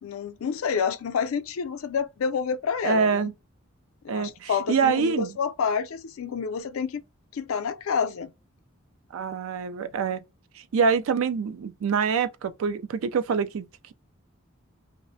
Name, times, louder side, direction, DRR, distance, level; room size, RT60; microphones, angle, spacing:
voice 1, 0.0-3.3 4.0-7.0 7.3-8.3, left 6 dB, 80° left, 0.4 m, -28 dB
voice 2, 2.8-3.3 4.1-5.3 9.1-10.2 10.7-13.9, right 5 dB, 75° right, 0.3 m, -25 dB
2.4 x 2.1 x 2.5 m
head